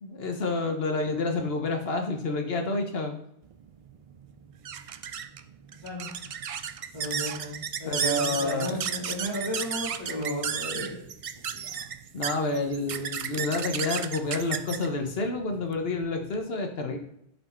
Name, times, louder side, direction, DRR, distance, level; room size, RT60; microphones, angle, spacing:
voice 1, 0.0-3.2 7.8-8.8 12.1-17.0, left 2 dB, 65° left, 4 dB, 1.1 m, -29 dB
sound 1, 3.5-16.4, right 8 dB, 65° right, 0.3 m, -34 dB
voice 2, 6.9-11.0 11.6-11.8, left 1 dB, 25° left, -9 dB, 2.3 m, -34 dB
10.0 x 4.5 x 4.3 m, 0.74 s
omnidirectional pair, 1.1 m